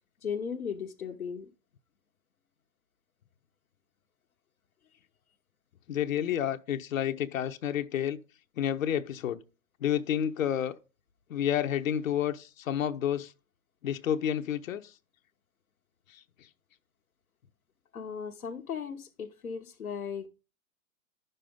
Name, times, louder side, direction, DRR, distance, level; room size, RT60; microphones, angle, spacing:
voice 1, 0.2-1.5 17.9-20.3, left 6 dB, 90° left, 1.1 m, -36 dB
voice 2, 5.9-8.2 8.6-9.4 9.8-10.8 11.3-13.3 13.8-14.9 16.1-16.2, left 10 dB, 70° left, 0.8 m, -30 dB
9.9 x 6.7 x 3.7 m
hypercardioid pair, 125°, 42 cm